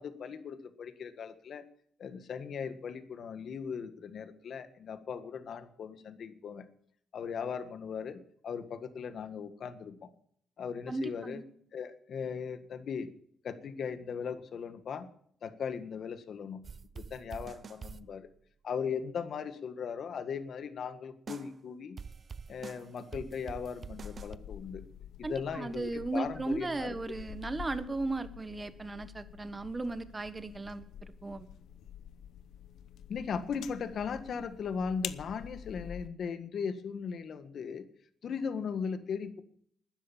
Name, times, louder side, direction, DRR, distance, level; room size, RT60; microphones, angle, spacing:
voice 1, 0.0-1.6 2.0-6.7 7.1-10.1 10.6-11.4 11.7-13.1 13.4-15.1 15.4-16.6 17.0-18.3 18.6-22.0 22.5-24.8 25.2-26.9 33.1-37.9 38.2-39.4, left 6 dB, 60° left, 10 dB, 1.7 m, -38 dB
voice 2, 10.9-11.4 25.2-31.5, right 2 dB, 20° right, 12 dB, 1.4 m, -36 dB
sound 1, 16.6-18.1 21.3-21.6 22.0-24.4, right 5 dB, 40° right, 0.7 m, -45 dB
sound 2, 24.0-36.1, left 9 dB, 75° left, 0.9 m, -47 dB
12.5 x 10.0 x 7.4 m, 0.62 s
cardioid pair, 90°, 0 cm